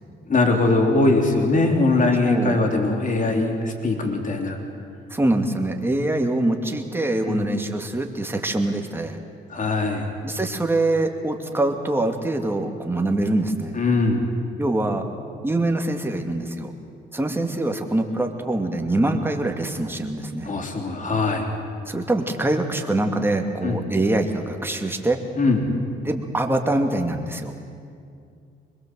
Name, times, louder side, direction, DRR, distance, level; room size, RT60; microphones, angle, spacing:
voice 1, 0.3-4.6 7.3-7.5 9.5-10.1 13.8-14.3 20.5-21.5 23.6-23.8 25.4-25.7, left 2 dB, 40° left, 3 dB, 3.5 m, -21 dB
voice 2, 2.2-2.6 5.1-9.2 10.2-13.8 14.6-15.1 15.4-16.7 17.1-20.6 21.9-25.2 26.0-27.5, right 2 dB, 10° right, 3 dB, 2.5 m, -24 dB
24.0 x 21.5 x 7.8 m, 2.4 s
cardioid pair, 90°, 20 cm